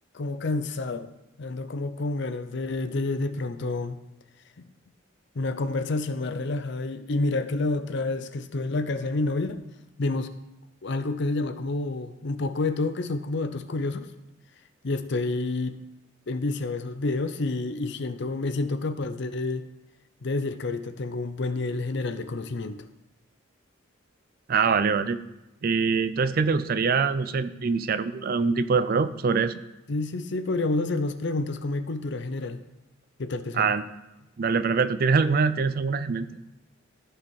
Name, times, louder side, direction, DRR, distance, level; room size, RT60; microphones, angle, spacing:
voice 1, 0.1-1.1 1.4-4.0 4.6-4.7 5.4-9.6 10.0-10.3 10.8-14.1 14.8-15.8 16.3-19.6 20.2-22.8 29.9-32.6 33.2-33.7, left 2 dB, 60° left, 11 dB, 0.6 m, -29 dB
voice 2, 24.5-25.2 25.6-29.6 33.5-33.9 34.4-36.3, right 5 dB, 50° right, 13 dB, 0.4 m, -24 dB
14.0 x 4.9 x 4.8 m, 0.98 s
head